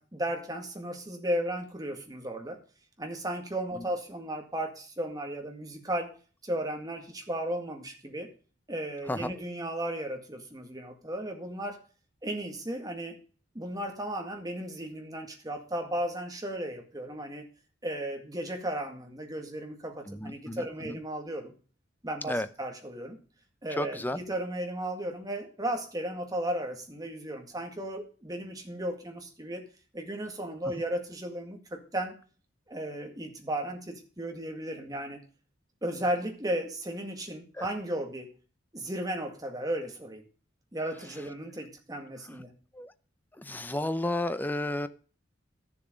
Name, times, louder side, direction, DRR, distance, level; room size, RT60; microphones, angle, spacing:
voice 1, 0.0-2.6 3.0-6.1 6.4-8.3 8.7-11.8 12.2-13.2 13.5-17.4 17.8-21.5 22.0-23.2 23.6-29.6 29.9-32.1 32.7-35.2 35.8-38.3 38.7-40.2 40.7-42.5, right 1 dB, 20° right, 3 dB, 2.0 m, -35 dB
voice 2, 20.1-21.0 22.3-22.5 23.7-24.2 37.5-37.7 42.7-42.9 43.4-44.9, left 1 dB, 10° left, 12 dB, 0.6 m, -32 dB
13.0 x 7.1 x 5.1 m, 0.39 s
head